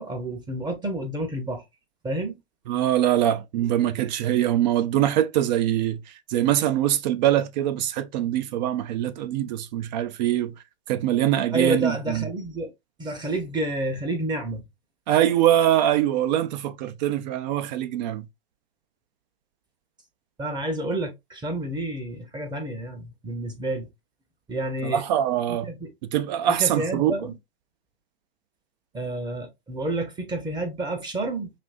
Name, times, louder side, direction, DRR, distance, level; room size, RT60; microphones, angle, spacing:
voice 1, 0.0-1.6 2.0-2.4 11.5-12.7 13.0-14.6 20.4-23.9 24.5-25.0 25.5-25.9 26.5-27.3 28.9-31.5, right 2 dB, 15° right, 0.8 m, -29 dB
voice 2, 2.7-10.5 10.9-12.3 15.1-18.3 24.8-25.7 26.1-27.1, right 11 dB, 50° right, 0.5 m, -23 dB
5.1 x 2.6 x 2.4 m
hypercardioid pair, 120°, 30 cm